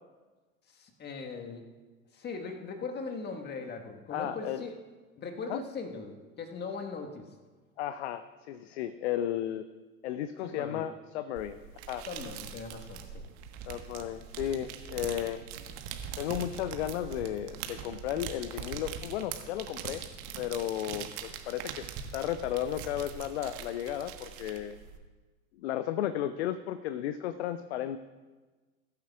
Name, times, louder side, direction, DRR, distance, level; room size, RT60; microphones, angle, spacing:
voice 1, 0.7-1.6 2.1-4.7 5.2-7.3 10.4-10.8 12.1-13.3, left 4 dB, 25° left, 3 dB, 1.6 m, -39 dB
voice 2, 4.1-4.6 5.5-5.6 7.8-9.7 10.0-11.6 11.9-12.1 13.7-15.4 16.2-20.0 20.4-21.9 22.1-24.8 25.6-28.0, left 11 dB, 50° left, 13 dB, 0.7 m, -34 dB
sound 1, 11.4-25.0, right 8 dB, 40° right, 1.5 m, -42 dB
21.5 x 12.5 x 2.4 m, 1.3 s
figure-of-eight pair, 85°, 43 cm